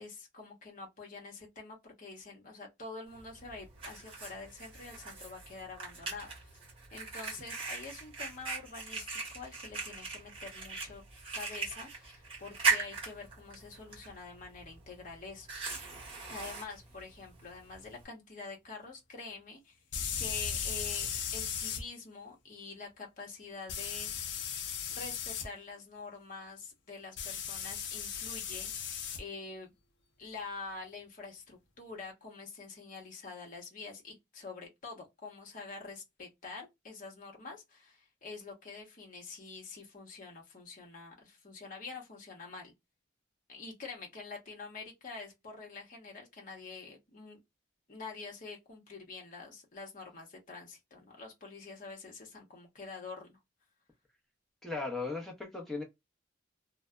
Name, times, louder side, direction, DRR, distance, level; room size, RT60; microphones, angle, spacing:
voice 1, 0.0-6.3 6.9-11.0 11.3-15.5 16.3-19.8 20.2-24.1 24.9-29.7 30.2-42.7 43.5-47.4 47.9-53.4, left 4 dB, 45° left, 0.9 m, -46 dB
Fire, 3.1-18.1, right 4 dB, 30° right, 1.1 m, -39 dB
sound 1, 16.5-16.6 19.9-21.8 23.7-25.5 27.2-29.2, left 7 dB, 60° left, 0.5 m, -37 dB
voice 2, 54.6-55.8, left 3 dB, ahead, 0.8 m, -37 dB
2.6 x 2.2 x 2.2 m
head